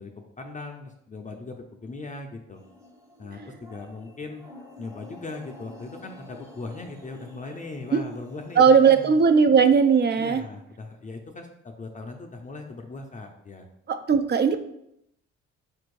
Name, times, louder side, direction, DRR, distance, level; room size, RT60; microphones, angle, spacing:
voice 1, 0.0-2.6 3.2-4.4 4.8-9.2 10.2-13.7, left 3 dB, 25° left, 3 dB, 0.5 m, -39 dB
sound 1, 2.5-9.3, left 1 dB, 10° right, 0.8 m, -49 dB
voice 2, 8.6-10.4 13.9-14.6, right 6 dB, 35° right, 9 dB, 0.4 m, -18 dB
4.3 x 2.6 x 4.6 m, 0.78 s
cardioid pair, 90°, 30 cm